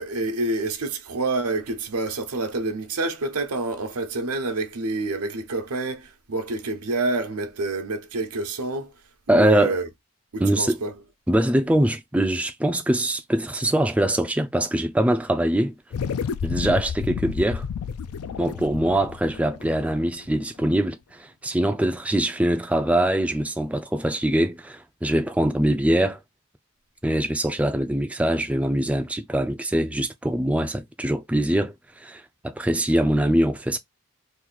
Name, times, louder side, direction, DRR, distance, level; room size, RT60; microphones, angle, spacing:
voice 1, 0.0-8.9 9.3-9.9 10.3-10.9, right 2 dB, 90° right, 0.9 m, -28 dB
voice 2, 9.3-9.8 10.4-10.8 11.3-15.7 16.4-17.6 18.4-26.2 27.0-33.8, right 1 dB, 5° right, 0.3 m, -23 dB
sound 1, 15.9-20.6, left 6 dB, 75° left, 0.4 m, -31 dB
3.0 x 2.5 x 3.8 m
head